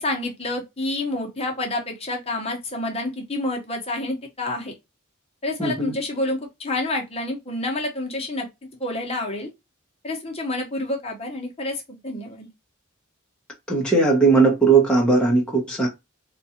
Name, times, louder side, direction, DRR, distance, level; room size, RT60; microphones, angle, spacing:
voice 1, 0.0-4.7 5.4-9.5 10.0-12.5, left 2 dB, 30° left, 0.9 m, -28 dB
voice 2, 5.6-5.9 13.7-15.9, right 4 dB, 5° left, 0.8 m, -18 dB
3.8 x 2.4 x 2.7 m
head